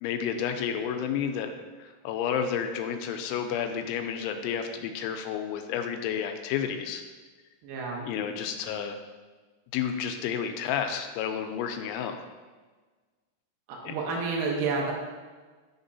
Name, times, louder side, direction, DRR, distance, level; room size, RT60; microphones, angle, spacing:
voice 1, 0.0-7.0 8.0-9.0 9.7-12.2 13.9-14.0, left 8 dB, 90° left, 6 dB, 3.0 m, -31 dB
voice 2, 7.6-8.1 13.7-14.9, right 4 dB, 75° right, -2 dB, 2.2 m, -30 dB
10.5 x 3.6 x 2.7 m, 1.4 s
omnidirectional pair, 5.3 m